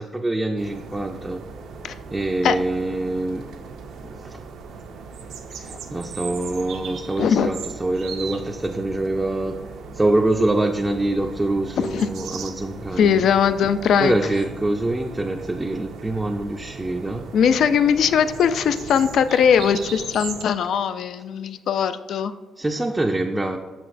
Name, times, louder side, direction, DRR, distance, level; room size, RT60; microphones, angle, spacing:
voice 1, 0.0-1.4 2.1-3.5 4.0-4.4 5.6-9.6 9.9-13.2 14.0-17.3 22.6-23.6, right 2 dB, 15° right, 1 dB, 0.4 m, -25 dB
sound 1, 0.6-20.4, right 5 dB, 80° right, 0.5 m, -38 dB
voice 2, 7.2-7.5 11.8-12.1 13.0-14.2 17.3-22.3, left 7 dB, 70° left, 12 dB, 0.3 m, -20 dB
6.3 x 5.8 x 2.5 m, 1.3 s
cardioid pair, 90°, 0 cm